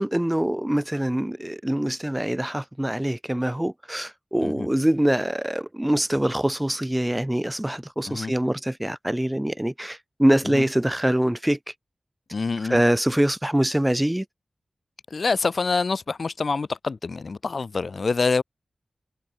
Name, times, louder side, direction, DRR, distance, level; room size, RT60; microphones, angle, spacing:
voice 1, 0.0-11.6 12.7-14.2, right 1 dB, 10° right, 0.9 m, -24 dB
voice 2, 12.3-12.8 15.1-18.4, left 4 dB, 70° left, 0.5 m, -26 dB
cardioid pair, 50°, 0 cm